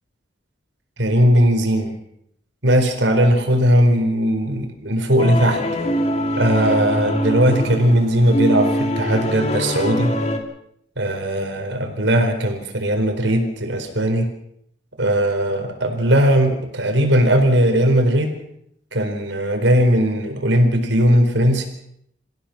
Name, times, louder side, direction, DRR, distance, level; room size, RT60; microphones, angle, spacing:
voice 1, 1.0-1.9 2.6-5.6 6.4-10.1 11.0-14.3 15.0-18.3 18.9-21.7, equal, 85° right, 5 dB, 4.3 m, -18 dB
sound 1, 5.2-10.4, equal, 35° left, 2.4 m, -23 dB
27.5 x 15.5 x 6.0 m, 0.73 s
head